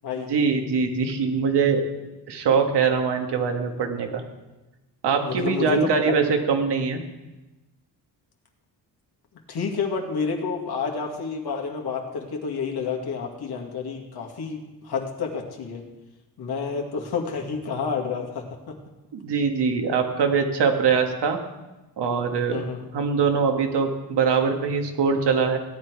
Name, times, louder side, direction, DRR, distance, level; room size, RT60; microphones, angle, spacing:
voice 1, 0.3-1.8 2.3-4.2 5.0-7.0 19.1-21.4 22.0-22.6 22.9-25.6, right 5 dB, 80° right, 4 dB, 1.9 m, -22 dB
voice 2, 5.2-5.9 9.5-15.8 16.4-18.8 22.5-22.8, left 5 dB, 70° left, 1 dB, 2.2 m, -29 dB
16.5 x 10.5 x 4.7 m, 1.1 s
wide cardioid pair, 130°, 40 cm